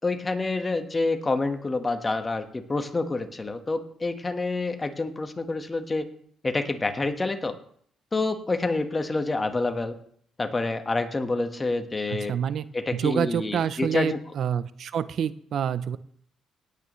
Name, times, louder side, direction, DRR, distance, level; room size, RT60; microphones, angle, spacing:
voice 1, 0.0-6.0 6.4-7.6 8.1-9.9 10.4-12.3 12.7-14.2, left 3 dB, 25° left, 7 dB, 1.4 m, -27 dB
voice 2, 12.1-16.0, right 8 dB, 65° right, 15 dB, 0.5 m, -27 dB
18.0 x 8.9 x 3.2 m, 0.62 s
cardioid pair, 90°, 0 cm